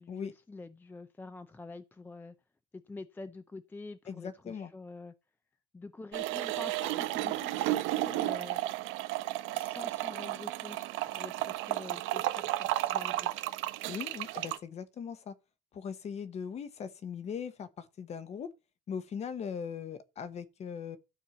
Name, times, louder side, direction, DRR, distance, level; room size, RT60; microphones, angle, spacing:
voice 1, 0.0-2.3 2.7-5.1 5.7-8.6 9.5-13.3, left 3 dB, 10° left, 0.4 m, -47 dB
voice 2, 4.1-4.7 13.9-15.3 15.7-18.5 18.9-21.0, left 7 dB, 35° left, 1.0 m, -39 dB
sound 1, 6.1-14.6, right 16 dB, 85° right, 0.9 m, -33 dB
12.5 x 4.6 x 7.0 m
cardioid pair, 175°, 20 cm